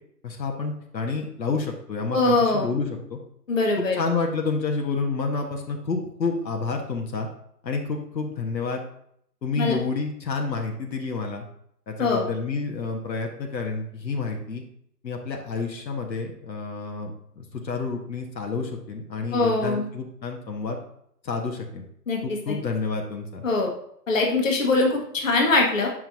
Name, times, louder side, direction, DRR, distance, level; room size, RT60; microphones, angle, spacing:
voice 1, 0.2-3.2 3.8-7.3 7.6-8.8 9.4-11.5 11.9-14.6 15.0-17.1 17.4-20.8 21.2-21.8 22.2-23.4, left 4 dB, 90° left, 2 dB, 1.5 m, -29 dB
voice 2, 2.1-2.7 3.5-4.0 9.6-9.8 12.0-12.2 19.3-19.9 22.1-22.2 22.5-22.6 23.4-23.7 24.1-25.9, left 3 dB, 50° left, 0 dB, 1.4 m, -22 dB
7.5 x 5.7 x 2.7 m, 0.70 s
hypercardioid pair, 175°, 50 cm